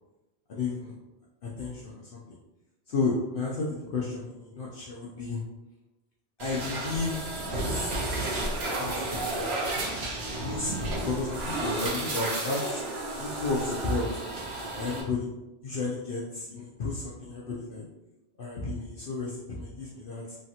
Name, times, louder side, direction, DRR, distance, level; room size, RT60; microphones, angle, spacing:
voice 1, 0.5-0.9 1.4-2.2 2.9-5.4 6.4-7.9 8.8-9.4 10.4-12.8 13.2-14.0 14.8-15.3 15.6-17.8 18.4-20.4, left 3 dB, 60° left, -5 dB, 0.7 m, -32 dB
sound 1, 6.4-15.0, right 2 dB, 70° right, 0.9 m, -32 dB
3.2 x 2.4 x 2.7 m, 0.99 s
omnidirectional pair, 1.1 m